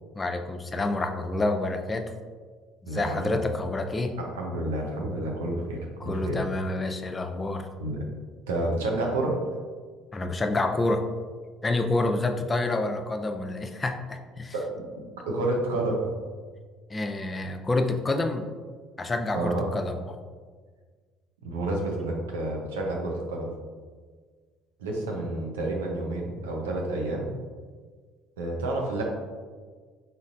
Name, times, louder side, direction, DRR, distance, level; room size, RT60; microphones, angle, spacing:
voice 1, 0.1-2.1 2.8-4.2 6.0-7.7 10.1-11.0 11.6-14.5 16.9-18.5 19.0-20.2, left 2 dB, 25° left, 6 dB, 0.5 m, -28 dB
voice 2, 2.9-3.3 4.2-6.4 7.8-8.0 8.5-9.4 14.5-14.9 15.2-16.2 19.3-19.7 21.4-23.5 24.8-27.3 28.4-29.0, right 2 dB, 85° right, 0 dB, 0.7 m, -29 dB
4.2 x 4.0 x 2.5 m, 1.5 s
hypercardioid pair, 60°, 0 cm